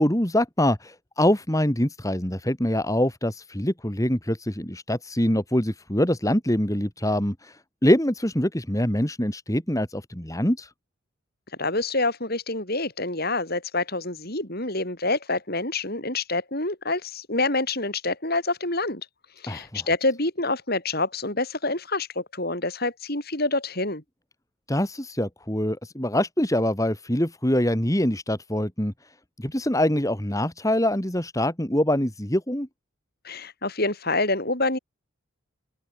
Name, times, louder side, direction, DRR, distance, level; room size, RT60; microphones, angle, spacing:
voice 1, 0.0-10.7 19.5-19.8 24.7-28.9 29.4-32.7, left 1 dB, 15° left, 2.4 m, -24 dB
voice 2, 11.6-19.0 19.4-24.0 33.2-34.8, left 2 dB, 45° left, 6.5 m, -27 dB
open air
head